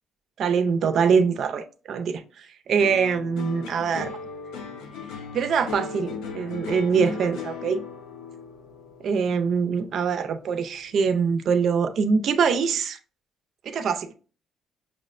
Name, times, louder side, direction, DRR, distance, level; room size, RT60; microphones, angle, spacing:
voice 1, 0.4-4.1 5.3-7.8 9.0-13.0 13.6-14.1, right 6 dB, 45° right, 0.4 m, -24 dB
sound 1, 2.8-11.2 11.6-12.2, left 5 dB, 85° left, 0.6 m, -37 dB
6.0 x 2.1 x 2.4 m
cardioid pair, 155°, 0 cm